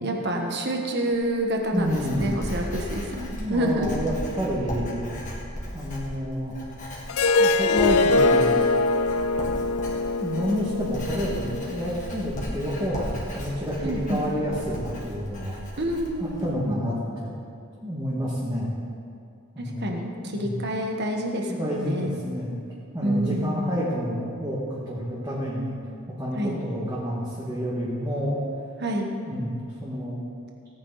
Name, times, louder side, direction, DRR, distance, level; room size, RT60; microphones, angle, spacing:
voice 1, 0.0-4.0 13.8-14.2 15.8-16.8 19.6-22.2 23.0-23.7 26.3-26.6 28.8-29.1, right 1 dB, 50° right, 2 dB, 1.5 m, -28 dB
Writing, 1.1-16.5, equal, 35° left, 2.2 m, -36 dB
voice 2, 1.7-2.3 3.3-5.1 5.7-6.5 7.4-8.7 10.2-15.6 16.2-17.3 17.8-18.7 19.6-19.9 20.3-20.5 21.5-22.5 22.9-25.7 26.2-28.4 29.2-30.2, equal, 15° right, -8 dB, 1.9 m, -29 dB
Harp, 7.1-12.3, left 3 dB, 75° left, 0.5 m, -23 dB
17.5 x 9.5 x 4.2 m, 2.4 s
head